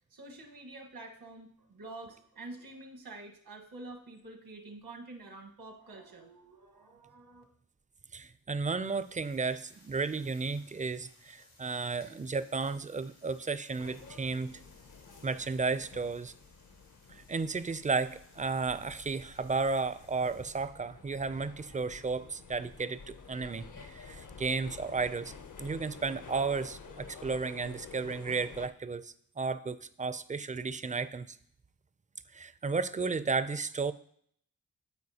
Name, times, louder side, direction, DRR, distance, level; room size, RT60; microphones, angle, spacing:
voice 1, 0.1-7.4, right 2 dB, 85° right, 2 dB, 1.4 m, -48 dB
voice 2, 8.1-14.6 15.2-16.3 17.1-25.3 25.6-31.4 32.3-33.9, right 4 dB, 20° right, 14 dB, 0.4 m, -33 dB
sound 1, 8.8-20.7, left 2 dB, 80° left, 3.6 m, -63 dB
sound 2, 13.8-28.7, left 5 dB, 60° left, 0.7 m, -50 dB
12.5 x 4.6 x 2.8 m, 0.62 s
cardioid pair, 65°, 36 cm